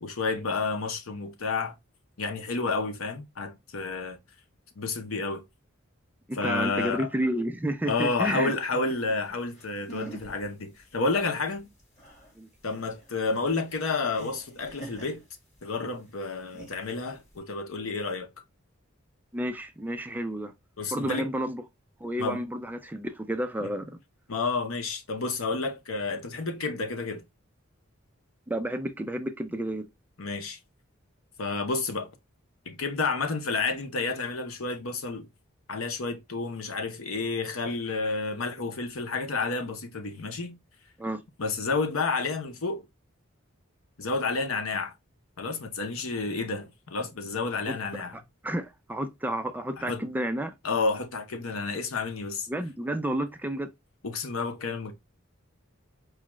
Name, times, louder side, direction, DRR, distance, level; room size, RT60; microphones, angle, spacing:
voice 1, 0.0-1.7 2.2-4.2 4.8-5.4 6.4-7.1 7.9-11.7 12.6-15.2 15.6-18.3 20.8-21.3 22.2-22.4 23.6-23.7 24.3-27.2 30.2-30.6 31.4-32.1 32.7-35.3 35.7-40.6 41.4-42.8 44.0-44.9 45.4-48.1 49.8-50.0 50.6-52.5 54.0-54.9, left 3 dB, 80° left, 0.8 m, -30 dB
voice 2, 6.3-8.5 12.4-12.5 19.3-20.5 20.9-21.6 22.0-24.0 28.5-29.9 41.0-41.2 47.7-47.8 48.1-50.5 52.5-53.7, right 1 dB, 10° right, 0.4 m, -31 dB
sound 1, 9.3-9.4 9.5-10.4 10.8-10.9 11.2-15.8 16.3-17.4, right 2 dB, 35° left, 1.9 m, -45 dB
4.8 x 2.3 x 3.0 m
head